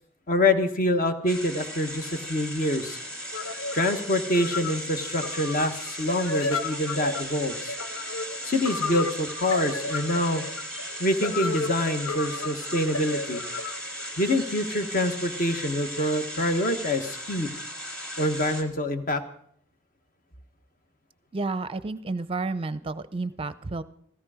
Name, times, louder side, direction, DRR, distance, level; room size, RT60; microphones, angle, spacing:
voice 1, 0.3-3.0 3.7-7.7 8.4-10.4 11.0-13.4 14.2-17.5 18.2-19.2, left 1 dB, 40° left, 7 dB, 1.4 m, -26 dB
sound 1, 1.3-18.6, equal, 5° left, 2.5 m, -37 dB
sound 2, 3.3-14.9, left 4 dB, 85° left, 1.1 m, -34 dB
voice 2, 21.3-23.8, right 3 dB, 25° right, 14 dB, 0.6 m, -31 dB
16.5 x 15.0 x 5.0 m, 0.66 s
head